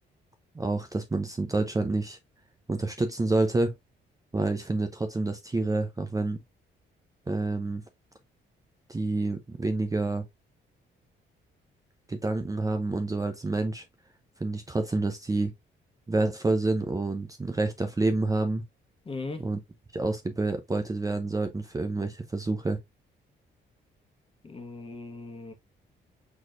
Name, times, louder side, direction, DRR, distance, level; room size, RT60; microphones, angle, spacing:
voice 1, 0.5-2.2 2.7-3.7 4.3-6.4 7.3-7.8 8.9-10.2 12.1-13.8 14.4-15.5 16.1-18.6 19.4-19.6 19.9-22.8, right 2 dB, 15° right, 0.6 m, -28 dB
voice 2, 19.0-19.4 24.4-25.5, left 3 dB, 25° left, 1.3 m, -38 dB
4.7 x 4.1 x 2.5 m
cardioid pair, 90°, 20 cm